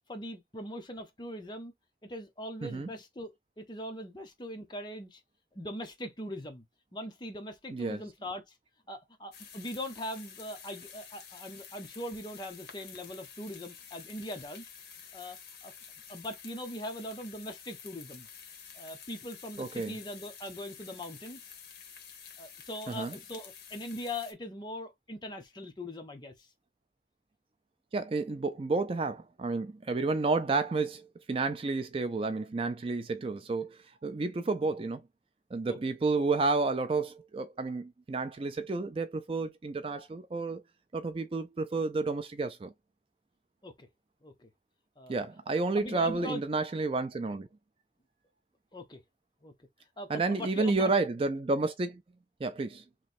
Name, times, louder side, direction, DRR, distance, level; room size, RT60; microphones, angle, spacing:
voice 1, 0.1-1.7 2.0-5.2 5.5-6.6 6.9-8.5 8.9-14.7 15.1-15.7 16.1-18.3 18.7-21.4 22.4-26.3 35.7-35.8 43.6-43.9 44.2-44.5 45.0-45.2 45.8-46.4 48.7-49.0 49.4-49.5 50.0-50.9, left 1 dB, 25° left, 0.7 m, -41 dB
voice 2, 7.7-8.0 19.6-19.9 22.9-23.1 27.9-35.0 35.5-40.6 40.9-42.7 45.1-47.5 50.1-52.0 52.4-52.8, right 3 dB, 30° right, 0.3 m, -31 dB
sound 1, 9.3-24.3, left 7 dB, 60° left, 1.0 m, -50 dB
3.1 x 2.6 x 4.2 m
head